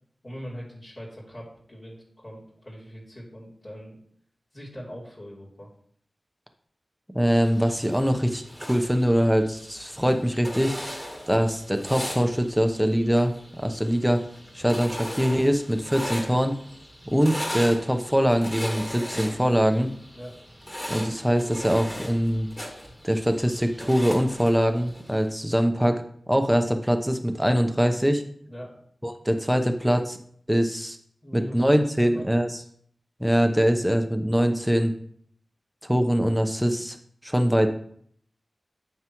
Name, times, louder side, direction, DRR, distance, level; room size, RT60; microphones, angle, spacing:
voice 1, 0.2-4.0 4.5-5.7 20.1-20.4 28.5-28.7 31.2-32.7, equal, 50° left, -6 dB, 3.1 m, -41 dB
voice 2, 7.1-10.7 11.3-14.2 14.5-16.5 17.1-19.9 20.9-22.5 23.0-26.0 26.3-28.2 29.0-30.2 30.5-31.0 31.3-32.6 33.2-34.9 35.8-37.0 37.2-37.7, equal, 5° right, 6 dB, 0.9 m, -23 dB
sound 1, 7.3-25.3, equal, 15° left, 2.1 m, -38 dB
9.3 x 6.5 x 3.1 m, 0.63 s
wide cardioid pair, 70°, 0 cm